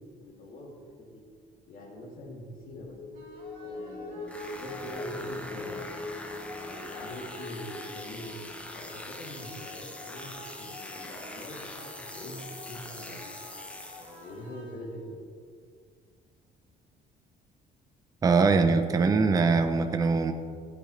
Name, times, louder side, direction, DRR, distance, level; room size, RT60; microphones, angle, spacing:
voice 1, 0.2-1.2 1.7-3.1 3.6-6.1 6.6-8.4 8.7-10.3 10.6-13.3 13.9-15.3, left 1 dB, 60° left, -2 dB, 2.8 m, -44 dB
sound 1, 2.6-13.2 13.6-13.7, left 2 dB, 80° left, 2.3 m, -43 dB
sound 2, 3.1-15.1, left 2 dB, 60° right, 3.3 m, -50 dB
sound 3, 4.2-14.4, left 1 dB, 10° left, 0.8 m, -43 dB
voice 2, 18.2-20.3, right 4 dB, 20° right, 8 dB, 0.6 m, -22 dB
17.0 x 9.3 x 3.3 m, 2.1 s
cardioid pair, 170°, 16 cm